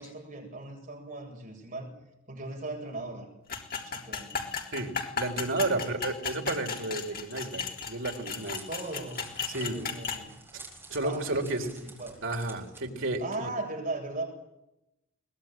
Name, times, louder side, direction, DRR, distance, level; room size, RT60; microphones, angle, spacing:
voice 1, 0.0-1.9 2.3-3.3 3.7-4.5 5.8-6.0 8.7-10.4 11.0-12.2 12.8-14.3, right 2 dB, 40° right, 1 dB, 7.7 m, -38 dB
sound 1, 3.5-10.2, left 5 dB, 45° left, 3.7 m, -35 dB
voice 2, 4.7-8.7 9.5-9.8 10.5-10.6 10.9-11.7 12.2-13.5, right 2 dB, 65° right, 3 dB, 3.9 m, -32 dB
Crackle, 8.2-12.8, right 2 dB, 10° right, 6.7 m, -50 dB
23.0 x 20.0 x 9.2 m, 0.89 s
head